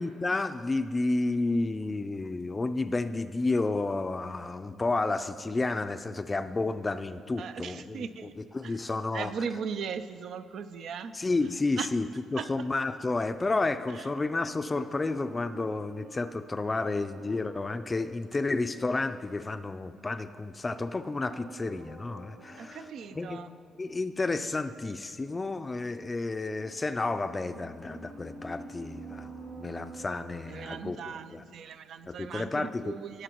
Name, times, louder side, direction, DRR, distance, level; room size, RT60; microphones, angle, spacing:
voice 1, 0.0-8.1 8.4-9.3 11.1-22.8 23.1-23.4 23.8-31.4 32.1-32.9, left 3 dB, 25° left, 11 dB, 0.4 m, -31 dB
voice 2, 7.4-8.3 8.6-8.8 9.1-11.1 11.4-11.9 12.4-12.5 13.9-14.1 22.6-23.5 30.5-33.2, right 6 dB, 70° right, 11 dB, 0.4 m, -38 dB
sound 1, 13.8-19.6 20.6-23.7 26.4-31.6 31.9-32.0, right 2 dB, 85° right, 2.4 m, -49 dB
17.5 x 7.1 x 3.0 m, 2.2 s
cardioid pair, 90°, 0 cm